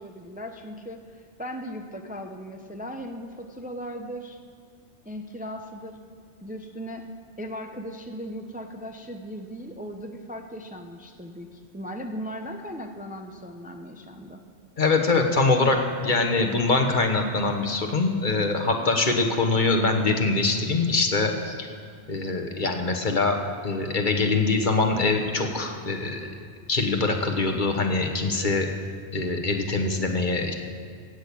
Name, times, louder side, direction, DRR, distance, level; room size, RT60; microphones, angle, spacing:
voice 1, 0.0-4.4 5.0-6.0 6.4-7.1 7.4-14.4, equal, 10° right, 4 dB, 0.6 m, -37 dB
voice 2, 14.8-21.7 22.1-23.4 23.6-26.3 26.7-28.7 29.1-30.5, left 3 dB, 50° left, 4 dB, 1.3 m, -23 dB
15.5 x 6.5 x 8.5 m, 2.2 s
omnidirectional pair, 1.1 m